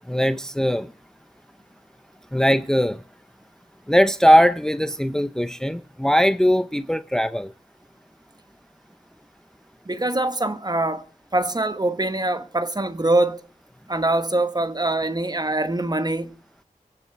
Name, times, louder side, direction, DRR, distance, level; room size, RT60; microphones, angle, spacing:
voice 1, 0.1-0.9 2.3-3.0 3.9-7.5, equal, 5° left, 0.7 m, -20 dB
voice 2, 9.8-11.0 11.3-13.4 13.9-16.4, right 2 dB, 30° right, 1.3 m, -23 dB
24.5 x 10.5 x 4.6 m
wide cardioid pair, 60°, 14 cm